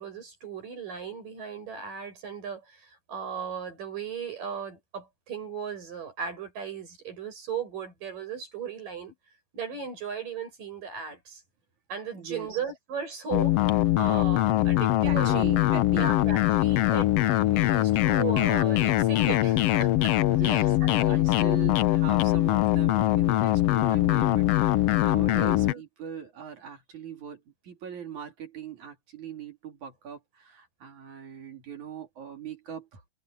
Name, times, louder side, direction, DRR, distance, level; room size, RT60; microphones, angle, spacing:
voice 1, 0.0-9.1 9.5-11.4 11.9-13.6 14.0-15.5 16.0-20.1 20.5-21.3 25.3-25.8, right 6 dB, 90° right, 9.7 m, -37 dB
voice 2, 12.1-12.6 15.0-16.3 20.3-33.0, right 8 dB, 65° right, 4.4 m, -40 dB
sound 1, 13.3-25.7, left 16 dB, 85° left, 1.4 m, -23 dB
omnidirectional pair, 3.7 m